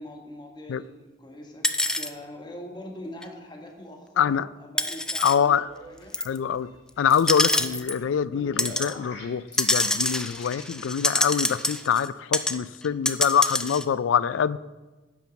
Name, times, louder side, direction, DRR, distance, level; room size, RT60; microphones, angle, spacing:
voice 1, 0.0-6.1 8.3-8.6, left 1 dB, 25° left, 1 dB, 1.4 m, -43 dB
sound 1, 1.6-2.1 3.2-3.3 4.8-5.4 6.1-6.4 7.1-8.0 8.6-8.9 9.5-12.1 12.3-12.6 12.8-13.8, left 1 dB, 5° left, 0.3 m, -26 dB
voice 2, 4.2-4.5 5.2-5.7 6.2-6.7 7.0-14.6, left 8 dB, 85° left, 18 dB, 0.3 m, -24 dB
sound 2, 5.4-10.6, left 2 dB, 65° left, 2.8 m, -46 dB
10.5 x 4.5 x 7.0 m, 1.2 s
head